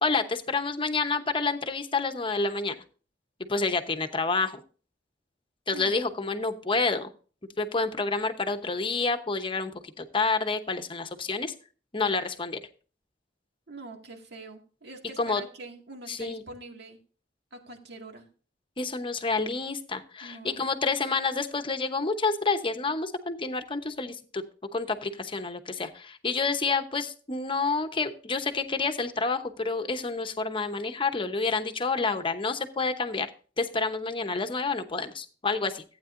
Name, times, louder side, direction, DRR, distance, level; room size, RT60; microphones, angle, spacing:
voice 1, 0.0-2.7 3.5-4.6 5.7-7.1 7.6-11.5 11.9-12.6 15.2-15.4 16.1-16.4 18.8-24.4 24.7-33.3 33.6-35.8, left 4 dB, 30° left, 8 dB, 0.9 m, -29 dB
voice 2, 13.7-17.0 17.5-18.3 20.2-20.7, right 2 dB, 60° right, 3 dB, 2.0 m, -44 dB
15.0 x 9.0 x 2.6 m, 0.38 s
head